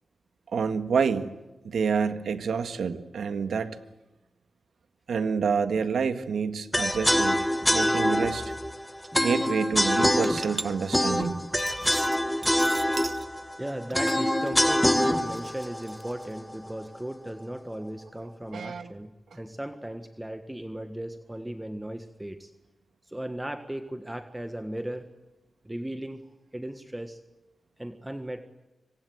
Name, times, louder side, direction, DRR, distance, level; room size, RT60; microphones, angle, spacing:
voice 1, 0.5-1.3 1.6-3.8 5.1-7.5 7.7-8.5 9.1-11.5 18.5-18.9, right 6 dB, 90° right, 9 dB, 1.8 m, -28 dB
sound 1, 6.7-16.8, left 1 dB, 5° left, 1.8 m, -25 dB
sound 2, 8.5-8.6 8.8-9.2 9.7-13.3 13.6-16.3, right 3 dB, 40° right, 1.1 m, -40 dB
voice 2, 13.6-22.5 23.0-25.1 25.6-26.2 26.5-27.2 27.8-28.4, right 1 dB, 10° right, 7 dB, 1.6 m, -36 dB
26.0 x 25.5 x 8.0 m, 1.0 s
wide cardioid pair, 95°, 0 cm